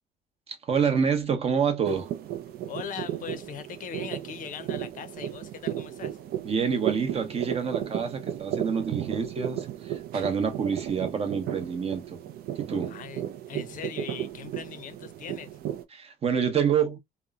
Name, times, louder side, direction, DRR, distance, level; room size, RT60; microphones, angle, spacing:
voice 1, 0.5-2.1 6.4-12.2 12.6-12.9 15.9-17.0, right 6 dB, 35° right, 0.7 m, -27 dB
sound 1, 1.8-15.8, right 11 dB, 65° right, 0.5 m, -35 dB
voice 2, 2.7-6.2 12.9-15.5, left 8 dB, 55° left, 0.5 m, -40 dB
2.9 x 2.1 x 2.3 m
cardioid pair, 110°, 17 cm